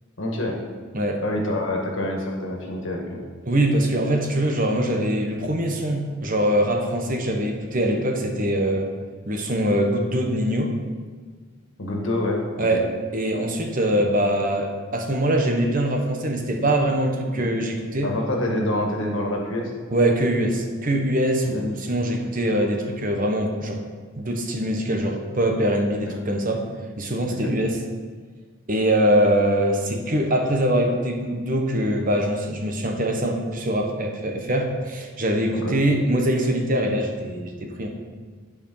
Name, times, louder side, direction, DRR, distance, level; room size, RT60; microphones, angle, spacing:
voice 1, 0.2-0.5 1.2-3.2 11.8-12.8 17.3-17.5 18.0-19.7 21.4-21.6 26.1-26.2 27.3-27.5 35.5-35.8, left 1 dB, 70° left, 0 dB, 1.7 m, -27 dB
voice 2, 3.5-8.9 9.2-10.7 12.6-18.1 19.9-23.8 24.2-26.6 27.0-27.8 28.7-37.9, right 1 dB, 40° right, 3 dB, 1.1 m, -23 dB
10.0 x 4.9 x 5.5 m, 1.5 s
head